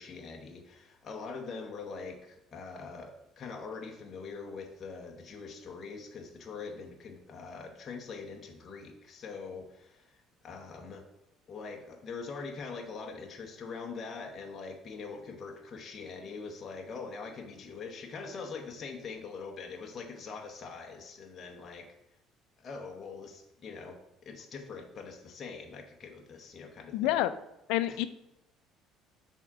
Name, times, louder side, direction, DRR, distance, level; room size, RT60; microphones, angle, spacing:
voice 1, 0.0-11.0 11.5-21.8 22.6-27.2 27.9-28.0, left 4 dB, 30° left, 2 dB, 0.8 m, -43 dB
voice 2, 26.9-27.3 27.7-28.1, left 14 dB, 85° left, 13 dB, 0.4 m, -27 dB
6.9 x 3.6 x 5.9 m, 0.91 s
cardioid pair, 155°, 0 cm